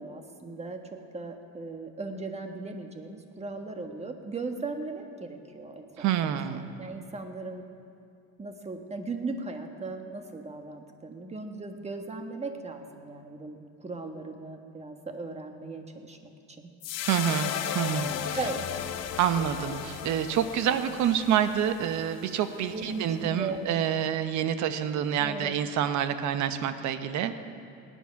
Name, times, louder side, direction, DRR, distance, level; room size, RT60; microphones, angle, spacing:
voice 1, 0.0-6.4 6.8-7.7 8.4-16.7 18.3-18.7 22.7-23.7 25.2-25.5, right 3 dB, 20° right, 5 dB, 1.5 m, -38 dB
voice 2, 6.0-6.7 17.0-18.4 19.2-27.4, right 9 dB, 65° right, 10 dB, 1.0 m, -27 dB
sound 1, 16.8-23.2, left 9 dB, 55° left, 0.9 m, -36 dB
18.5 x 10.0 x 5.9 m, 2.4 s
cardioid pair, 105°, 31 cm